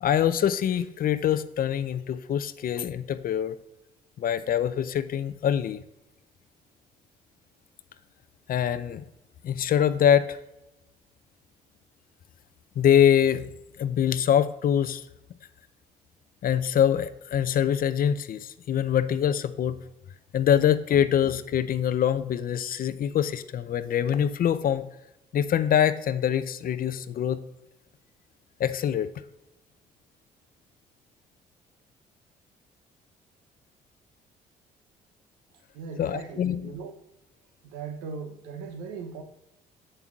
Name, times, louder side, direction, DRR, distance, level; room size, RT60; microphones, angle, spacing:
voice 1, 0.0-3.6 4.2-5.8 8.5-9.0 9.4-10.4 12.8-13.4 13.8-15.0 16.4-19.8 20.3-24.8 25.3-27.4 28.6-29.1 36.0-36.6, left 9 dB, 50° left, 0.5 m, -24 dB
voice 2, 35.7-36.9 37.6-39.2, right 5 dB, 85° right, 0.8 m, -38 dB
7.9 x 7.1 x 2.4 m
supercardioid pair, 60°, 19 cm